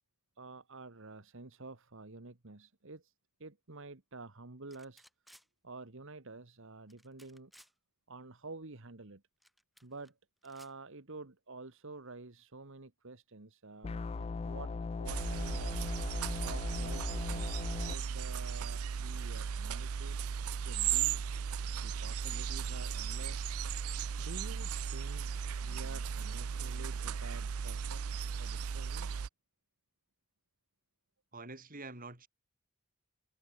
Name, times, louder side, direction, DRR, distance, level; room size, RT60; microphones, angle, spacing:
voice 1, 0.4-3.1 3.4-5.0 5.6-7.5 8.1-9.2 9.8-10.2 10.4-14.7 15.0-15.8 16.4-20.2 20.5-21.2 21.8-23.6 24.2-29.1, right 3 dB, 60° right, 1.6 m, -50 dB
sound 1, 4.7-5.5 6.9-7.7 9.4-10.1 10.4-10.7, equal, ahead, 5.8 m, -61 dB
sound 2, 13.8-17.9, left 4 dB, 30° left, 0.3 m, -38 dB
sound 3, 15.1-29.3, right 7 dB, 90° right, 0.5 m, -36 dB
voice 2, 31.3-32.3, right 3 dB, 40° right, 5.6 m, -46 dB
head